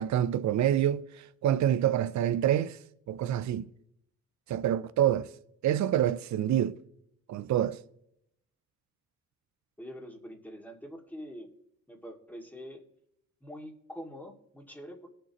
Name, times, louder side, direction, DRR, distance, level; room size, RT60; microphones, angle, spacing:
voice 1, 0.0-2.8 3.1-3.7 4.5-5.3 5.6-6.8 7.3-7.8, right 11 dB, 60° right, 0.6 m, -27 dB
voice 2, 9.8-11.5 11.9-12.8 13.4-15.1, equal, 5° left, 2.2 m, -44 dB
17.5 x 6.8 x 3.0 m
cardioid pair, 80°, 32 cm